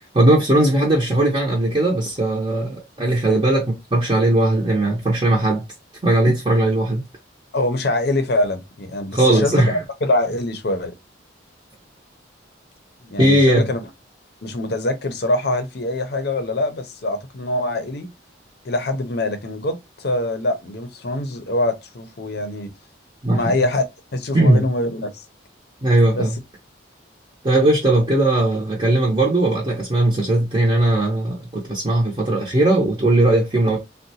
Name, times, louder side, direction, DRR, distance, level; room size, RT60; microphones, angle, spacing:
voice 1, 0.1-3.7 3.9-5.6 6.0-7.0 9.1-9.8 13.2-13.7 23.2-23.5 24.3-24.6 25.8-26.4 27.4-33.8, right 1 dB, 25° right, 0.6 m, -18 dB
voice 2, 7.5-9.7 10.0-10.9 13.0-13.8 14.4-18.1 18.6-22.7 23.3-23.8 24.1-25.2 26.1-26.3, left 1 dB, 55° left, 0.6 m, -24 dB
3.8 x 2.1 x 2.7 m
head